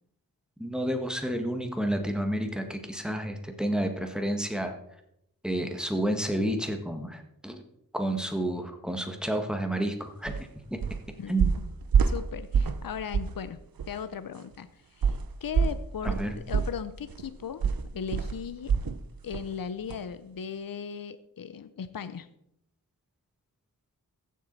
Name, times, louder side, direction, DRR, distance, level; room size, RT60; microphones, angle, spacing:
voice 1, 0.6-4.7 5.4-7.6 7.9-10.8 11.3-11.5 16.0-16.4, right 1 dB, ahead, 5 dB, 1.6 m, -30 dB
sound 1, 10.3-10.4 10.8-11.1 11.4-12.9 13.1-13.4 13.8-13.9 15.0-19.0 19.3-19.5 19.9-20.0, right 6 dB, 75° right, 0.7 m, -26 dB
voice 2, 12.1-13.6 13.9-17.7 17.9-18.7 19.2-22.3, left 7 dB, 70° left, 12 dB, 0.6 m, -37 dB
15.0 x 7.5 x 4.1 m, 0.78 s
wide cardioid pair, 65°, 35 cm